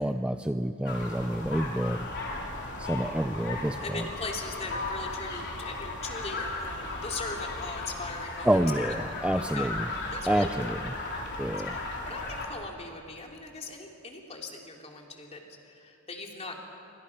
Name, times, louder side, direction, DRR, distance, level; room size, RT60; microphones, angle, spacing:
voice 1, 0.0-2.1 2.8-4.1 8.4-9.9 10.3-10.9 11.4-11.8, right 1 dB, 5° right, 8 dB, 0.5 m, -28 dB
sound 1, 0.9-12.5, left 2 dB, 55° left, 3.7 m, -36 dB
voice 2, 3.8-8.5 9.4-9.7 10.1-10.8 11.7-16.6, left 3 dB, 30° left, 1 dB, 3.0 m, -40 dB
28.0 x 24.5 x 6.0 m, 2.8 s
head